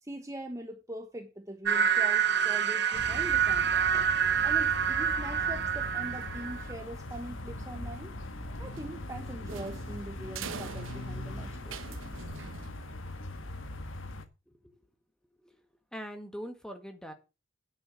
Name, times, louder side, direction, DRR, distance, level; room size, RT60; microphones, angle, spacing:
voice 1, 0.0-4.2 4.4-8.1 8.6-12.3, right 1 dB, 15° right, 1.1 m, -42 dB
sound 1, 1.7-6.7, right 7 dB, 60° right, 1.2 m, -27 dB
sound 2, 2.9-14.2, left 1 dB, 80° left, 1.6 m, -40 dB
sound 3, 8.7-13.2, right 5 dB, 90° right, 1.0 m, -44 dB
voice 2, 14.5-14.9 15.4-17.1, equal, 5° left, 2.0 m, -43 dB
10.0 x 7.1 x 7.4 m
head